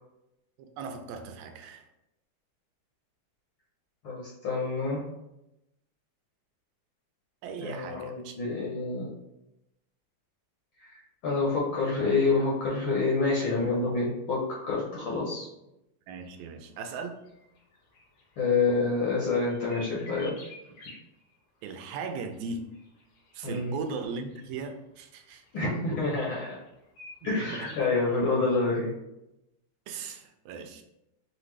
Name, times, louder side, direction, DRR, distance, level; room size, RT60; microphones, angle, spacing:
voice 1, 0.6-1.9 7.4-8.4 16.1-17.2 21.6-22.6 23.3-25.4 27.2-27.7 29.9-30.8, right 4 dB, 85° right, 5 dB, 1.9 m, -38 dB
voice 2, 4.0-5.0 7.6-9.1 11.2-15.5 18.4-20.3 23.4-23.7 25.5-26.6 27.2-28.9, left 3 dB, 65° left, -5 dB, 1.4 m, -27 dB
sound 1, 16.3-16.4 16.8-16.9 17.3-18.4 19.0-21.0 21.7-24.7 25.2-26.7 27.0-28.0, left 2 dB, 90° left, 2.5 m, -49 dB
5.6 x 2.6 x 3.1 m, 0.88 s
omnidirectional pair, 3.3 m